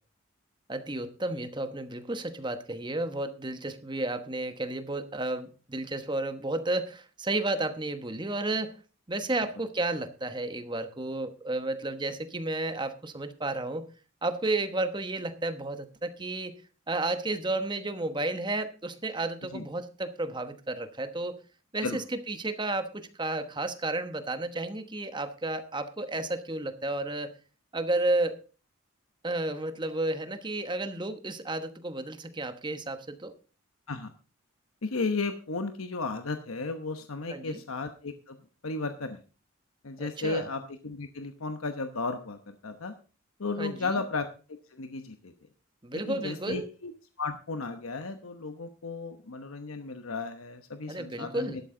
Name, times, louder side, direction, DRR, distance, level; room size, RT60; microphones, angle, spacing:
voice 1, 0.7-8.7 9.1-13.9 14.2-16.5 16.9-21.4 21.7-27.3 27.7-28.4 29.2-33.3 37.3-37.6 40.0-40.5 43.6-44.0 45.8-46.7 50.9-51.6, right 2 dB, 20° right, 9 dB, 1.1 m, -32 dB
voice 2, 34.8-38.4 38.6-39.2 39.8-42.9 43.4-44.3 44.7-45.3 45.9-46.9 47.2-51.6, left 3 dB, 90° left, 8 dB, 1.0 m, -34 dB
12.5 x 11.5 x 3.8 m, 0.35 s
head